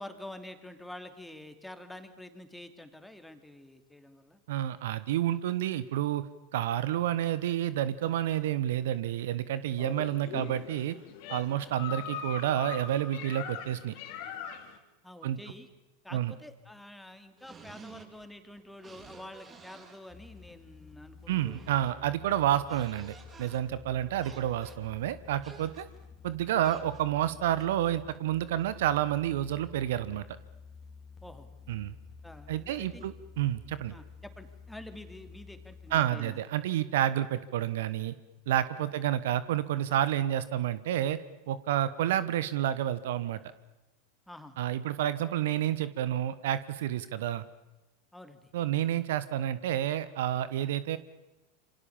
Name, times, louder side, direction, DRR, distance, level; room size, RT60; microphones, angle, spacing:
voice 1, 0.0-4.4 11.6-11.7 15.0-15.7 16.0-21.6 21.9-22.0 31.2-31.5 32.2-33.1 33.9-36.4 38.9-39.0 44.3-44.6 48.1-48.5, left 1 dB, 5° left, 8 dB, 2.9 m, -48 dB
voice 2, 4.5-6.2 6.5-10.9 11.3-14.0 15.2-15.4 16.1-16.3 21.3-25.8 26.2-30.2 31.7-32.0 32.5-33.9 35.9-38.1 38.5-41.2 41.5-43.4 44.6-47.4 48.5-51.0, right 12 dB, 65° right, 15 dB, 1.1 m, -29 dB
sound 1, 9.8-14.8, left 7 dB, 55° left, 3.3 m, -41 dB
sound 2, 17.4-18.2 18.5-20.0 21.3-22.0 22.3-23.6 24.2-24.8 25.4-25.8 26.6-27.1 27.5-27.6, right 5 dB, 25° right, 7.8 m, -52 dB
sound 3, 20.1-36.0, left 5 dB, 25° left, 3.2 m, -51 dB
27.5 x 25.5 x 7.3 m, 1.0 s
figure-of-eight pair, 90°, 0 cm